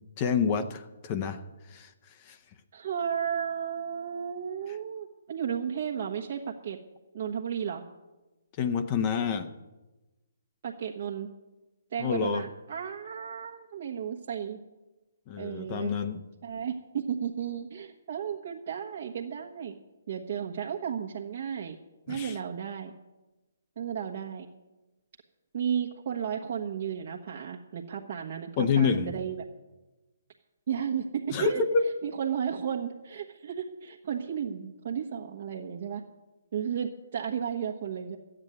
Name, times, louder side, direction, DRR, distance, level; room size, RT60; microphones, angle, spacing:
voice 1, 0.2-2.4 4.7-4.8 8.6-9.5 12.0-12.4 15.3-16.2 22.1-22.4 28.6-29.1 31.3-31.8, left 6 dB, 35° left, 7 dB, 0.8 m, -28 dB
voice 2, 2.7-6.8 7.1-7.8 10.6-11.3 11.9-14.6 15.4-16.0 16.4-19.7 20.1-21.8 22.1-22.9 23.8-24.5 25.5-29.4 30.7-31.6 32.0-36.0 36.5-38.2, right 8 dB, 50° right, -1 dB, 1.2 m, -33 dB
13.0 x 8.9 x 8.0 m, 1.1 s
figure-of-eight pair, 135°, 0 cm